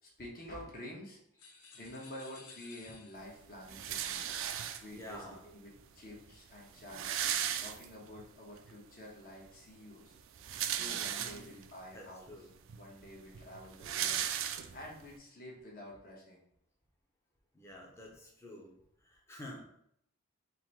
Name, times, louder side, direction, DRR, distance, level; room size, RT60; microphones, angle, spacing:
voice 1, 0.0-1.2 1.7-4.3 4.8-7.1 7.6-10.2 10.7-12.3 12.7-16.4, left 1 dB, 40° left, -2 dB, 1.1 m, -49 dB
sound 1, 1.4-3.5, left 4 dB, 85° left, 0.8 m, -55 dB
sound 2, 3.7-5.1 6.0-6.1 6.3-6.4 6.6-8.2 8.7-8.8 10.2-11.7 12.3-12.4 12.7-15.0, right 10 dB, 60° right, 0.3 m, -36 dB
voice 2, 4.9-5.4 11.2-11.6 11.9-12.5 17.5-18.7 19.0-19.6, left 1 dB, 10° left, -1 dB, 0.7 m, -49 dB
3.7 x 2.7 x 4.5 m, 0.73 s
head